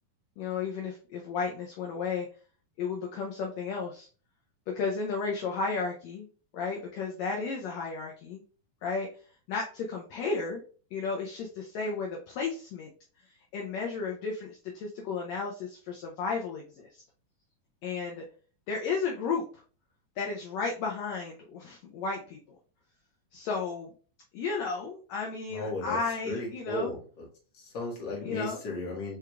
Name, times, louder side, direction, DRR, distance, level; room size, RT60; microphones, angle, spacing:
voice 1, 0.4-2.3 2.8-4.1 4.7-6.3 6.5-8.4 8.8-9.1 9.5-10.6 10.9-12.9 13.5-16.9 17.8-18.2 18.7-19.6 20.2-22.4 23.3-23.9 24.3-26.9 28.2-28.6, left 4 dB, 75° left, 0 dB, 1.7 m, -33 dB
voice 2, 25.5-26.0 26.3-27.2 27.6-29.2, left 2 dB, 45° left, -2 dB, 1.8 m, -35 dB
4.8 x 4.7 x 2.3 m, 0.39 s
omnidirectional pair, 3.7 m